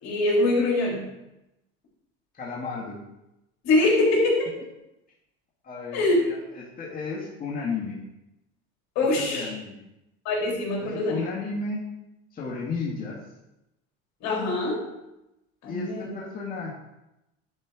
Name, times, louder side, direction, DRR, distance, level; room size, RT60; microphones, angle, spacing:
voice 1, 0.0-1.1 3.6-4.5 5.9-6.2 9.0-9.5 10.3-11.3 14.2-14.8 15.6-16.1, left 2 dB, 60° left, -3 dB, 3.6 m, -23 dB
voice 2, 2.3-3.0 5.6-8.0 9.2-9.8 10.8-11.8 12.3-13.2 15.7-16.8, left 4 dB, 30° left, -5 dB, 2.0 m, -33 dB
10.5 x 4.4 x 4.9 m, 0.93 s
supercardioid pair, 105°, 30 cm